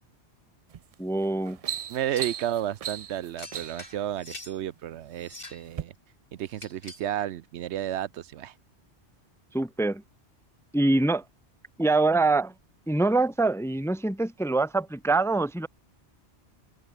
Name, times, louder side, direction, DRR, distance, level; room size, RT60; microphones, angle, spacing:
sound 1, 0.7-0.9 1.3-3.9 4.8-5.3 5.7-5.8, right 9 dB, 60° right, 0.4 m, -36 dB
voice 1, 1.0-1.6 9.5-10.0 10.7-11.2 11.8-12.5 12.9-15.7, right 2 dB, 5° left, 0.6 m, -24 dB
voice 2, 1.9-5.9 6.3-8.5, right 11 dB, 80° right, 0.9 m, -32 dB
sound 2, 2.1-2.4 3.4-4.6 5.2-5.7 6.5-7.1, left 2 dB, 50° left, 4.1 m, -45 dB
open air
omnidirectional pair, 1.2 m